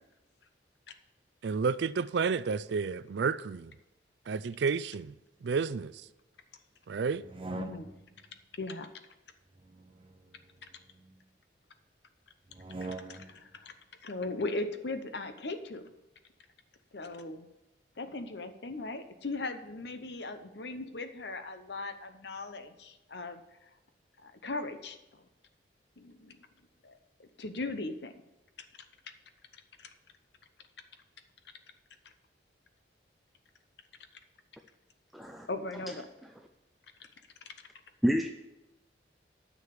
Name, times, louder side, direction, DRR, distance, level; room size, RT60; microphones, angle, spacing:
voice 1, 1.4-3.7 4.3-5.1 5.4-5.9 6.9-7.2, right 5 dB, 65° right, 0.4 m, -31 dB
sound 1, 7.1-8.2 9.5-11.1 12.5-13.5, right 3 dB, 30° right, 0.7 m, -44 dB
voice 2, 7.5-7.9 8.5-8.9 12.8-13.7 14.0-15.9 16.9-17.5 18.0-23.7 24.2-25.2 26.0-26.4 26.8-28.1 29.8-29.9 35.5-36.1 37.0-37.1, left 2 dB, 65° left, 0.8 m, -38 dB
voice 3, 35.1-35.5 35.9-36.0 38.0-38.3, equal, ahead, 0.4 m, -28 dB
9.7 x 6.4 x 6.8 m
head